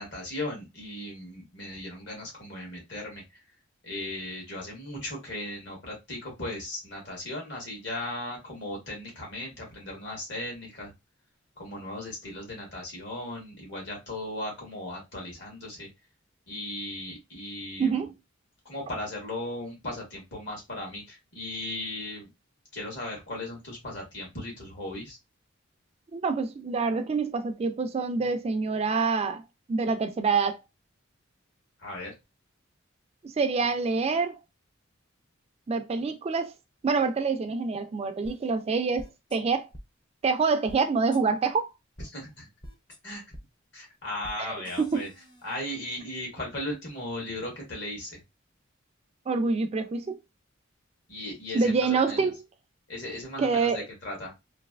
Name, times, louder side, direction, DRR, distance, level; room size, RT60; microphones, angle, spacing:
voice 1, 0.0-3.2 3.8-10.9 11.6-15.9 16.5-18.0 18.6-22.3 22.7-25.2 31.8-32.1 42.1-42.5 43.0-43.2 43.7-45.1 45.4-48.2 51.1-52.3 52.9-54.3, left 1 dB, 60° left, 1.7 m, -37 dB
voice 2, 17.8-18.1 26.1-29.4 29.7-30.6 33.2-34.4 35.7-36.5 36.8-39.7 40.2-41.7 44.4-45.1 49.3-50.2 51.5-52.4 53.4-53.9, right 4 dB, 30° right, 0.3 m, -26 dB
sound 1, 38.3-38.4 39.0-39.4 39.7-39.8 40.7-40.8 41.1-41.2 42.0-42.1 42.6-43.0 43.3-43.4 44.2-44.4 44.7-45.6, equal, 25° left, 0.6 m, -45 dB
3.2 x 2.6 x 2.4 m
head